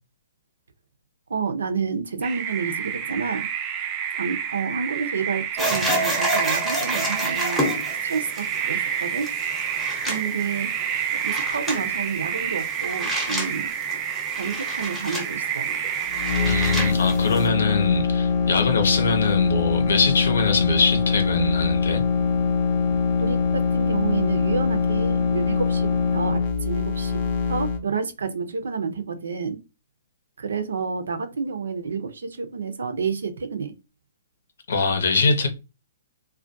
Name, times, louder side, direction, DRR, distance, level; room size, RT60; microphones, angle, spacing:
voice 1, 1.3-3.5 4.1-7.7 8.0-9.3 10.0-10.7 11.2-13.7 14.4-15.6 23.2-29.6 30.4-33.7, right 5 dB, 85° right, 0.5 m, -29 dB
sound 1, 2.2-16.9, right 8 dB, 25° right, 0.3 m, -29 dB
sound 2, 5.6-17.5, equal, ahead, 0.7 m, -30 dB
sound 3, 16.1-27.8, left 5 dB, 45° left, 0.5 m, -23 dB
voice 2, 16.4-22.0 34.7-35.5, left 4 dB, 80° left, 0.7 m, -23 dB
2.4 x 2.1 x 2.5 m
hypercardioid pair, 150°, 0 cm